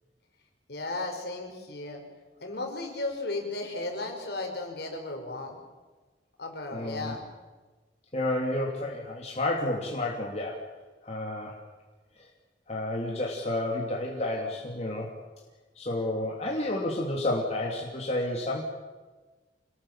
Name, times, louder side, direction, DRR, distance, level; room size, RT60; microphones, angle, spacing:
voice 1, 0.7-2.0 2.4-5.6 6.4-7.2, left 2 dB, 60° left, 3 dB, 5.2 m, -35 dB
voice 2, 6.7-7.2 8.1-10.6 11.0-11.6 12.7-15.1 15.7-18.7, left 1 dB, 35° left, -2 dB, 3.1 m, -30 dB
26.5 x 20.5 x 7.5 m, 1.3 s
head